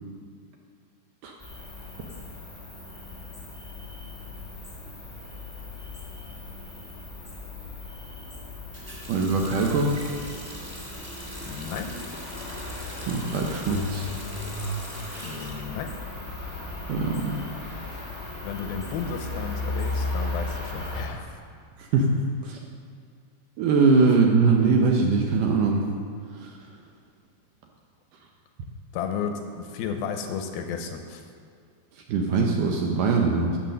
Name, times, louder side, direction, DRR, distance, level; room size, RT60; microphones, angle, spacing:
Cricket, 1.4-21.1, left 2 dB, 10° left, 1.2 m, -36 dB
Water tap faucet, 8.7-16.5 16.8-17.8, equal, 15° right, 1.5 m, -43 dB
voice 1, 9.1-10.0 13.0-14.1 16.9-17.4 21.8-22.6 23.6-25.9 26.4-26.5 32.1-33.6, right 4 dB, 75° right, 1 dB, 2.0 m, -22 dB
voice 2, 11.5-12.0 15.2-15.9 18.4-21.3 28.9-31.2, left 6 dB, 80° left, 5 dB, 2.5 m, -33 dB
11.0 x 7.4 x 6.5 m, 2.2 s
omnidirectional pair, 4.5 m